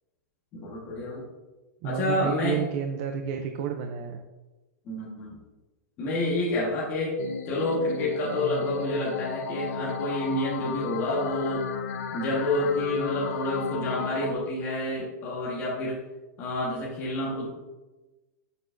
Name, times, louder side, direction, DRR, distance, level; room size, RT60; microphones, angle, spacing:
voice 1, 0.5-1.3 1.8-2.6 4.8-5.4 6.0-7.2 7.5-11.6 12.1-16.0 16.4-17.5, left 1 dB, 20° left, -6 dB, 1.2 m, -28 dB
voice 2, 1.8-4.2, right 7 dB, 25° right, 4 dB, 0.4 m, -30 dB
sound 1, 7.2-14.3, left 7 dB, 50° left, 0.6 m, -34 dB
8.3 x 6.5 x 2.5 m, 1.1 s
supercardioid pair, 180°, 10 cm